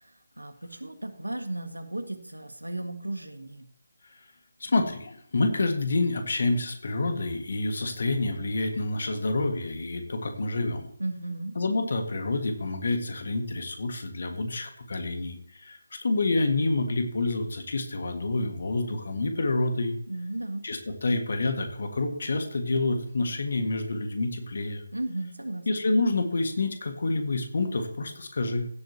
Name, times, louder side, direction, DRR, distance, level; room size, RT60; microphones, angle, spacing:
voice 1, 0.4-3.7 11.0-11.5 20.1-20.6 24.9-25.7, right 1 dB, 75° right, 7 dB, 1.8 m, -35 dB
voice 2, 4.6-10.9 11.6-20.0 20.6-24.8 25.7-28.7, left 2 dB, 45° left, 6 dB, 1.8 m, -28 dB
16.0 x 8.0 x 2.9 m, 0.64 s
figure-of-eight pair, 155°, 0 cm